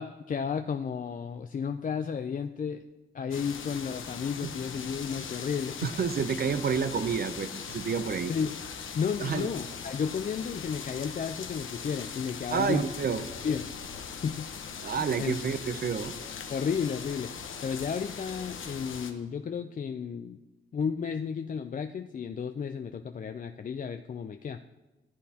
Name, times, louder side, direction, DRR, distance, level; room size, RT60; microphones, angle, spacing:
voice 1, 0.0-2.8 3.1-5.8 8.3-8.6 8.9-12.8 13.4-13.7 14.2-14.5 14.8-15.4 16.5-17.3 17.6-20.4 20.7-24.6, left 6 dB, 40° left, 8 dB, 0.4 m, -33 dB
sound 1, 3.3-19.1, left 6 dB, 75° left, 0.9 m, -40 dB
voice 2, 5.8-8.3 9.2-9.5 12.5-13.2 14.8-16.1, right 6 dB, 50° right, 13 dB, 0.6 m, -29 dB
14.0 x 8.4 x 2.8 m, 1.1 s
cardioid pair, 80°, 21 cm